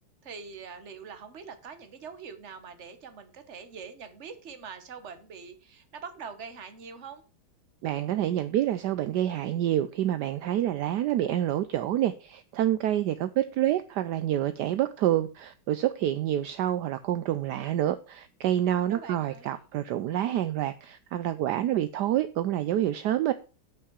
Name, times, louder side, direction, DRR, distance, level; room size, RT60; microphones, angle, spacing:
voice 1, 0.2-7.2 18.7-19.6, right 5 dB, 40° right, 1.3 m, -44 dB
voice 2, 7.8-23.3, right 12 dB, 75° right, 1.0 m, -27 dB
8.5 x 5.7 x 6.1 m
omnidirectional pair, 2.2 m